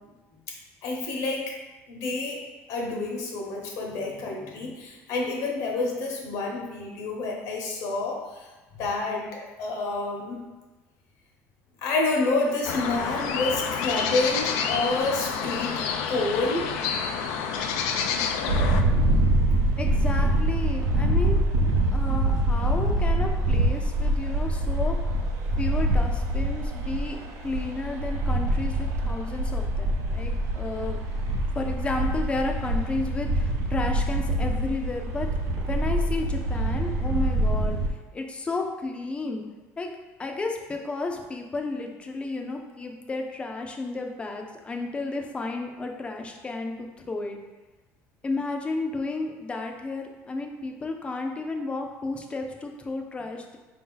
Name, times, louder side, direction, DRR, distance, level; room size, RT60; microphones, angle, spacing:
voice 1, 0.8-1.4 1.9-2.4 2.7-10.4 11.8-16.7 17.0-17.2 17.8-17.9, left 3 dB, 70° left, -1 dB, 1.1 m, -29 dB
sound 1, 12.6-18.8, left 6 dB, 90° left, 0.4 m, -28 dB
sound 2, 18.5-37.9, right 1 dB, 60° right, 0.6 m, -25 dB
voice 2, 19.8-21.4 21.9-25.0 25.6-31.0 31.5-35.3 35.6-39.4 39.8-39.9 40.2-47.4 48.2-53.6, left 3 dB, 20° left, 3 dB, 0.5 m, -32 dB
4.6 x 2.8 x 3.8 m, 1.2 s
cardioid pair, 140°, 6 cm